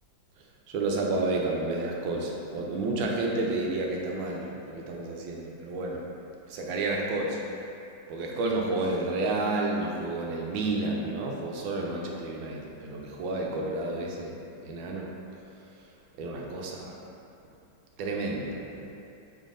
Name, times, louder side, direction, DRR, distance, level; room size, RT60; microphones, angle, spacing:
voice 1, 0.7-6.1 6.5-7.4 8.1-14.3 14.6-15.1 16.2-16.9 18.0-18.9, right 2 dB, 85° right, -1 dB, 1.4 m, -30 dB
5.6 x 3.4 x 2.5 m, 2.8 s
omnidirectional pair, 2.1 m